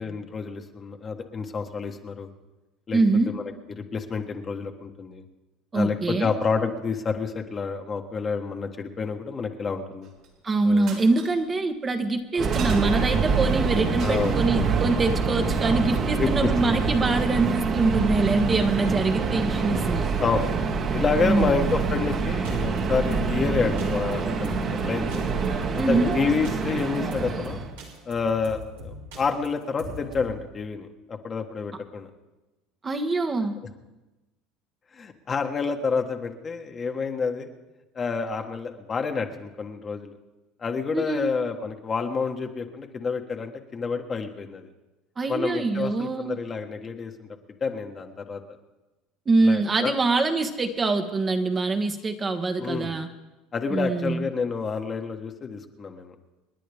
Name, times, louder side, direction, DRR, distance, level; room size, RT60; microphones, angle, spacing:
voice 1, 0.0-2.3 2.9-3.0 3.3-5.2 5.7-10.1 10.6-10.9 14.0-14.4 16.2-16.7 20.2-20.5 20.9-25.3 25.9-27.6 28.0-32.1 34.9-37.5 37.9-40.1 40.6-44.7 45.3-47.3 47.6-48.4 49.4-49.9 52.6-53.0 53.5-56.1, left 5 dB, 35° left, 4 dB, 1.4 m, -29 dB
voice 2, 2.9-3.3 5.7-6.3 10.4-20.0 21.2-21.7 25.8-26.1 32.8-33.6 40.9-41.3 45.2-46.4 49.3-53.1 53.7-54.3, right 3 dB, 30° right, 6 dB, 1.2 m, -24 dB
sound 1, 10.0-10.4 10.8-11.5 12.3-13.2 13.9-14.5 16.7-16.8 16.9-17.0, right 5 dB, 65° right, 3.6 m, -41 dB
Subway metro underground, 12.4-27.7, right 5 dB, 45° right, 1.7 m, -26 dB
sound 2, 21.8-30.4, left 1 dB, 90° right, 3.0 m, -41 dB
28.5 x 10.0 x 3.5 m, 1.1 s
supercardioid pair, 90°, 0 cm